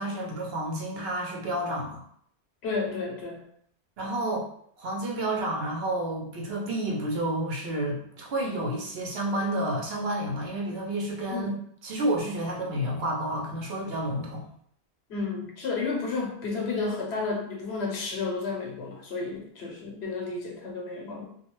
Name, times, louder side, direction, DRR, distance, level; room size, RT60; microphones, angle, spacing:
voice 1, 0.0-2.0 4.0-4.5 4.8-11.5 11.8-14.4, right 1 dB, 70° right, -1 dB, 0.9 m, -30 dB
voice 2, 2.6-3.5 11.3-11.5 15.1-21.2, left 4 dB, 75° left, 0 dB, 1.0 m, -32 dB
2.3 x 2.3 x 3.0 m, 0.66 s
omnidirectional pair, 1.1 m